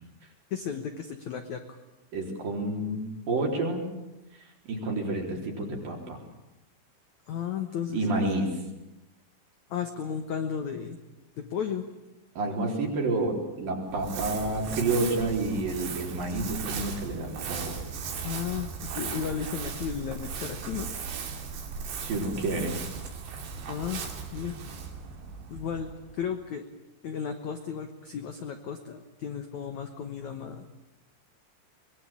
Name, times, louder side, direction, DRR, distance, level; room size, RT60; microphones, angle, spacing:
voice 1, 0.5-1.8 7.3-8.0 9.7-11.0 11.4-11.8 18.2-18.7 18.9-20.9 23.7-24.0 24.3-24.6 25.5-26.6 27.0-30.7, left 7 dB, 75° left, 6 dB, 1.7 m, -34 dB
voice 2, 2.1-3.0 3.3-3.9 4.7-6.2 7.9-8.5 12.4-17.8 22.0-22.8, right 2 dB, 50° right, 1 dB, 5.5 m, -29 dB
Crumpling crinkling, 13.9-26.3, right 6 dB, 65° right, 4.6 m, -37 dB
23.5 x 21.5 x 9.0 m, 0.96 s
omnidirectional pair, 5.3 m